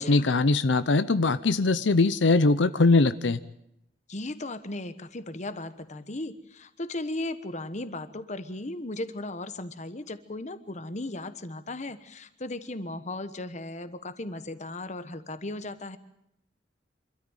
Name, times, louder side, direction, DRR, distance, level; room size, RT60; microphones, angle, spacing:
voice 1, 0.0-3.4, left 3 dB, 90° left, 13 dB, 0.7 m, -21 dB
voice 2, 4.1-16.0, left 2 dB, 40° left, 11 dB, 1.2 m, -36 dB
25.5 x 13.5 x 9.0 m, 0.81 s
head